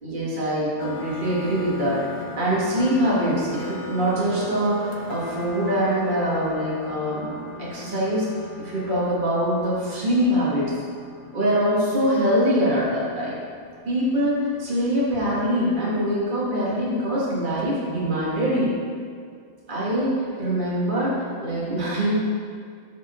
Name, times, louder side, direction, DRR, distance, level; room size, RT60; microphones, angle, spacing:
voice 1, 0.0-7.3 7.6-8.3 8.6-10.7 11.3-13.3 13.9-18.7 19.7-22.3, equal, 35° right, -7 dB, 1.9 m, -23 dB
sound 1, 0.8-18.6, left 4 dB, 80° left, 1.2 m, -40 dB
12.5 x 4.4 x 3.7 m, 2.2 s
omnidirectional pair, 1.5 m